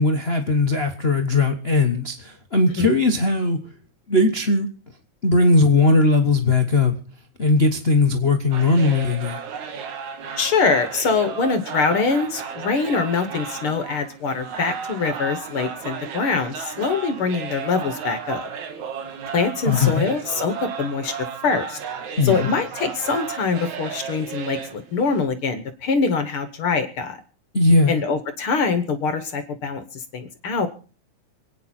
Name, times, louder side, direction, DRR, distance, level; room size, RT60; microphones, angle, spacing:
voice 1, 0.0-3.6 4.1-4.7 5.2-6.9 7.4-9.4 19.6-20.1 22.2-22.5 27.5-27.9, left 2 dB, 80° left, 0.5 m, -18 dB
sound 1, 8.5-25.2, right 6 dB, 75° right, 2.9 m, -34 dB
voice 2, 10.4-18.5 19.3-21.1 21.4-21.8 22.2-27.2 27.9-30.7, left 4 dB, 55° left, 1.7 m, -24 dB
27.0 x 9.4 x 4.3 m
omnidirectional pair, 3.3 m